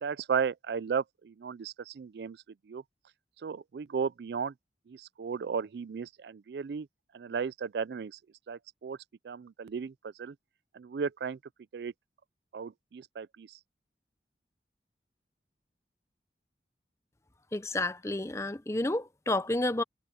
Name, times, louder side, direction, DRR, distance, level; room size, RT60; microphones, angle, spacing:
voice 1, 0.0-2.4 2.7-2.8 3.4-4.5 4.9-6.9 7.1-8.1 8.5-9.0 9.2-10.3 10.7-11.4 11.7-11.9 12.5-13.5, right 6 dB, 70° right, 0.4 m, -35 dB
voice 2, 17.5-19.8, left 2 dB, 15° left, 0.7 m, -30 dB
head